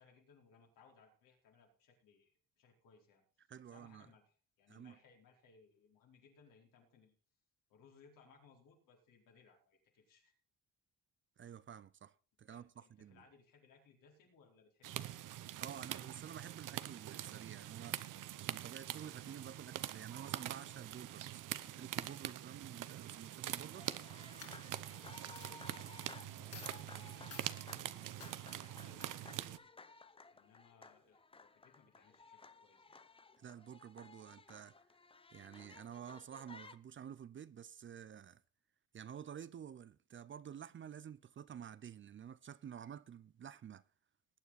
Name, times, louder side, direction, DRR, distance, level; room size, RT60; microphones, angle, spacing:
voice 1, 0.0-2.3 2.6-3.2 3.6-7.1 7.7-10.3 12.5-15.1 25.3-28.1 28.5-29.7 30.3-33.0, left 5 dB, 75° left, 4.5 m, -66 dB
voice 2, 3.5-4.1 4.7-5.0 11.4-13.2 15.6-18.1 18.4-23.9 33.4-34.8 35.3-38.4 38.9-43.8, right 8 dB, 35° right, 0.5 m, -51 dB
sound 1, 14.8-29.6, right 13 dB, 70° right, 0.9 m, -44 dB
sound 2, 23.8-36.8, left 4 dB, 15° left, 0.7 m, -58 dB
Coin (dropping), 24.4-25.0 25.4-25.5 26.2-26.3 26.5-26.8 27.3-27.5 28.2-28.3, left 6 dB, 45° left, 3.1 m, -52 dB
19.0 x 9.0 x 4.1 m
cardioid pair, 105°, 33 cm